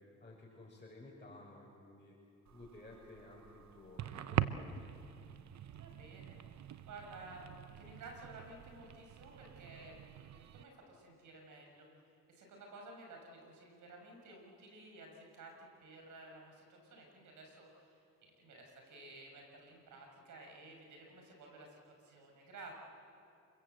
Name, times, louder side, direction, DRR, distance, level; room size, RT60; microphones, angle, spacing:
voice 1, 0.2-2.1 2.5-4.7, left 2 dB, 25° left, -4 dB, 6.3 m, -54 dB
sound 1, 2.5-10.6, right 11 dB, 65° right, 0.9 m, -43 dB
voice 2, 5.7-11.9 12.3-22.7, right 2 dB, 80° right, 2 dB, 6.3 m, -54 dB
28.5 x 22.5 x 8.0 m, 2.5 s
cardioid pair, 70°, 30 cm